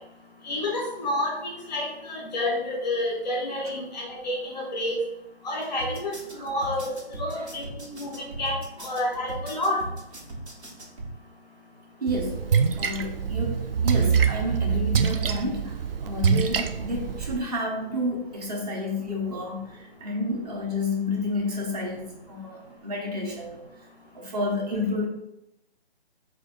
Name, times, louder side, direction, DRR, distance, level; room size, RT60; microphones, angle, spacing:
voice 1, 0.4-5.0 5.4-6.1 6.4-9.8, left 1 dB, 5° left, -2 dB, 0.6 m, -29 dB
sound 1, 5.8-11.1, right 2 dB, 80° right, 1.6 m, -38 dB
voice 2, 12.0-12.4 12.8-15.8 16.0-23.6 24.1-25.1, left 2 dB, 35° right, 0 dB, 1.1 m, -30 dB
Splash splatter, 12.1-17.4, right 6 dB, 60° right, 0.4 m, -25 dB
4.5 x 2.6 x 4.4 m, 0.88 s
figure-of-eight pair, 155°, 33 cm